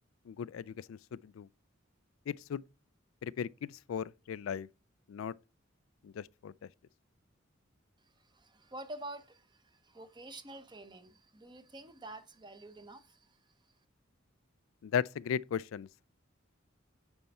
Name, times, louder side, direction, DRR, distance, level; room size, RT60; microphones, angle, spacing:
voice 1, 0.3-1.5 2.3-2.6 3.2-4.7 5.1-5.3 6.0-6.5 14.8-15.9, left 7 dB, 90° left, 0.3 m, -36 dB
voice 2, 8.2-13.4, right 2 dB, 25° right, 0.9 m, -48 dB
9.1 x 4.4 x 4.2 m
head